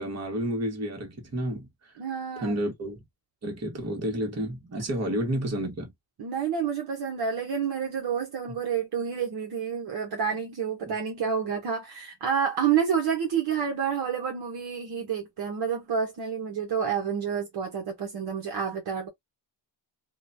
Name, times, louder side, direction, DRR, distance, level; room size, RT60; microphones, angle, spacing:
voice 1, 0.0-1.9 2.4-3.0 3.4-5.9 10.9-11.0, right 1 dB, 35° right, 1.3 m, -31 dB
voice 2, 2.0-2.5 6.2-19.1, right 7 dB, 55° right, 0.9 m, -29 dB
2.8 x 2.2 x 2.6 m
cardioid pair, 100°, 46 cm